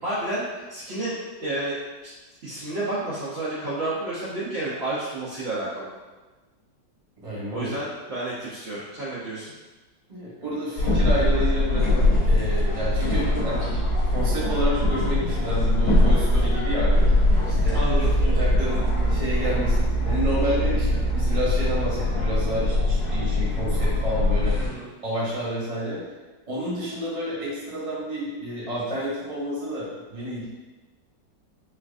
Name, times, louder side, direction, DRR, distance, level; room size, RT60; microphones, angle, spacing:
voice 1, 0.0-0.4 0.7-1.7 2.0-2.1 2.4-5.9 7.5-9.5 17.7-18.2 24.6-24.9, right 2 dB, 65° right, -10 dB, 0.6 m, -30 dB
voice 2, 7.2-7.7 10.1-16.9 17.5-17.8 18.2-24.6 25.0-26.0 26.5-30.4, equal, 30° right, -8 dB, 0.8 m, -30 dB
sound 1, 10.8-24.7, left 1 dB, 55° left, 1.1 m, -22 dB
4.4 x 2.4 x 2.5 m, 1.2 s
omnidirectional pair, 2.0 m